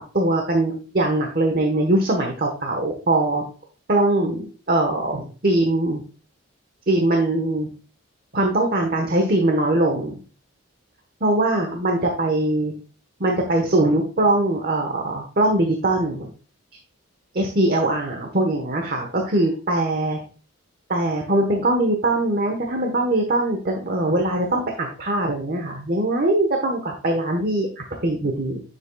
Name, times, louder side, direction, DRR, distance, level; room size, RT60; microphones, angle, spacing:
voice 1, 0.1-3.4 3.9-6.0 6.9-7.7 8.3-10.2 11.2-12.7 13.2-16.3 17.3-20.2 20.9-28.6, right 1 dB, 45° right, 2 dB, 1.2 m, -21 dB
10.0 x 7.4 x 2.3 m, 0.37 s
head